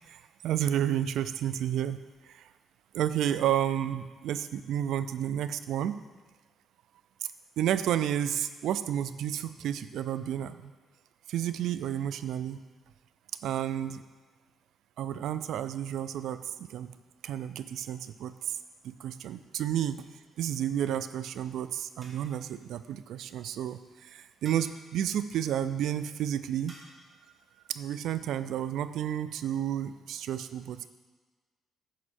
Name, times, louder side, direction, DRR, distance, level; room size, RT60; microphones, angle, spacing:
voice 1, 0.1-2.0 2.3-2.4 2.9-5.9 7.6-10.7 11.3-12.6 13.4-14.0 15.0-16.9 17.2-18.6 18.8-20.0 20.4-26.8 27.7-30.9, right 10 dB, 80° right, 13 dB, 0.4 m, -31 dB
sound 1, 19.8-20.4 22.0-22.6 24.4-25.0 26.7-27.1, right 1 dB, 35° right, 1.9 m, -54 dB
9.1 x 6.1 x 4.3 m, 1.4 s
cardioid pair, 90°, 0 cm